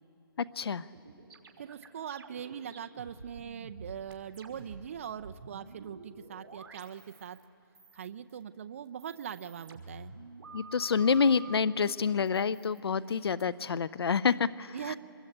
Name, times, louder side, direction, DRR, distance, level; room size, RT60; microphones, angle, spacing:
sound 1, 0.9-7.4 7.7-8.4 8.8-11.6 12.2-13.4, right 3 dB, 50° right, 5.1 m, -50 dB
voice 1, 1.6-7.4 7.9-10.1 14.7-15.0, right 8 dB, 35° right, 8 dB, 0.6 m, -41 dB
voice 2, 10.5-15.0, left 5 dB, 80° left, 17 dB, 0.6 m, -28 dB
25.5 x 21.0 x 8.8 m, 2.8 s
hypercardioid pair, 170°, 13 cm